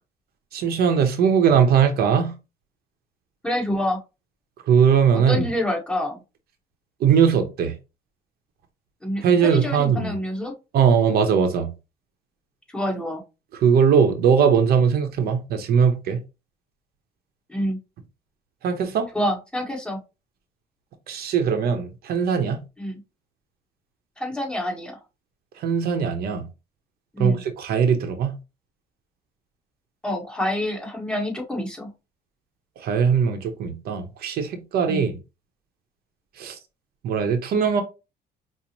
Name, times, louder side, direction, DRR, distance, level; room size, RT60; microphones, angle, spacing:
voice 1, 0.5-2.4 4.6-5.5 7.0-7.8 9.2-10.1 10.7-11.7 13.5-16.2 18.6-19.1 21.1-22.6 25.5-26.4 27.2-28.4 32.8-35.2 36.3-36.6 37.0-37.8, right 7 dB, 65° right, 0.7 m, -20 dB
voice 2, 3.4-4.0 5.1-6.2 9.0-10.5 12.7-13.2 17.5-17.8 19.1-20.0 22.8-23.0 24.2-25.0 27.1-27.4 30.0-31.9 34.8-35.0, left 1 dB, 5° left, 1.6 m, -27 dB
5.1 x 2.1 x 2.9 m
cardioid pair, 110°, 17 cm